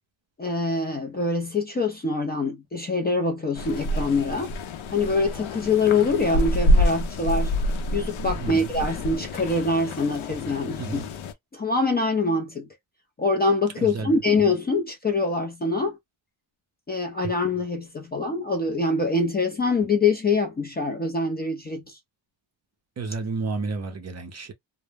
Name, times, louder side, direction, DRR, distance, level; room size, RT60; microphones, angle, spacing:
voice 1, 0.4-4.5 4.9-7.5 7.9-11.0 11.5-12.7 13.2-16.0 16.9-22.0, left 3 dB, 20° left, 0.4 m, -24 dB
sound 1, 3.5-11.3, left 1 dB, 85° left, 0.6 m, -27 dB
voice 2, 8.3-8.7 10.8-11.1 13.8-14.1 23.0-24.5, right 3 dB, 35° right, 0.5 m, -31 dB
2.0 x 2.0 x 3.2 m
cardioid pair, 130°, 47 cm